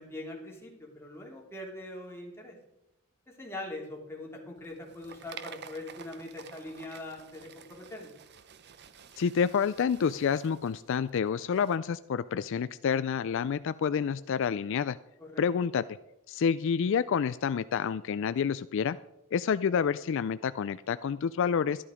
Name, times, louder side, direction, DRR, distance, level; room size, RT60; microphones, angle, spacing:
voice 1, 0.0-2.6 3.4-8.1 15.2-15.5, left 1 dB, 10° left, -1 dB, 2.9 m, -42 dB
sound 1, 4.6-11.8, right 7 dB, 55° right, 0.7 m, -50 dB
voice 2, 9.2-15.0 15.4-15.8 16.3-19.0 19.3-21.8, left 7 dB, 65° left, 15 dB, 0.4 m, -28 dB
12.5 x 11.0 x 5.0 m, 0.87 s
head